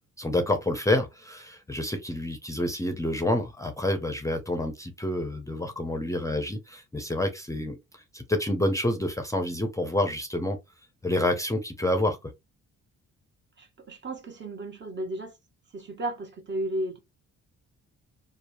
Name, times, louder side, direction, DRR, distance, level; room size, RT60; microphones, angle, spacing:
voice 1, 0.2-10.6 11.0-12.2, left 1 dB, 10° left, 0.6 m, -28 dB
voice 2, 13.6-15.3 15.7-17.0, right 1 dB, 40° right, 0.8 m, -34 dB
3.0 x 2.0 x 2.5 m
cardioid pair, 90°, 30 cm